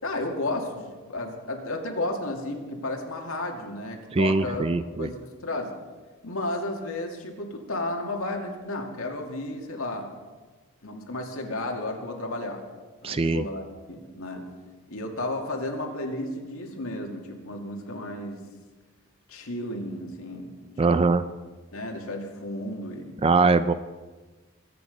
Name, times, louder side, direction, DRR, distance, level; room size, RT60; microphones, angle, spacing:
voice 1, 0.0-4.7 5.0-5.7 6.2-10.1 10.8-12.6 13.0-14.5 14.9-18.4 19.3-21.1 21.7-23.2, left 2 dB, 70° left, 2 dB, 2.3 m, -33 dB
voice 2, 4.1-5.1 13.0-13.5 20.8-21.2 23.2-23.7, right 3 dB, 25° right, 12 dB, 0.4 m, -22 dB
22.5 x 9.2 x 5.3 m, 1.3 s
head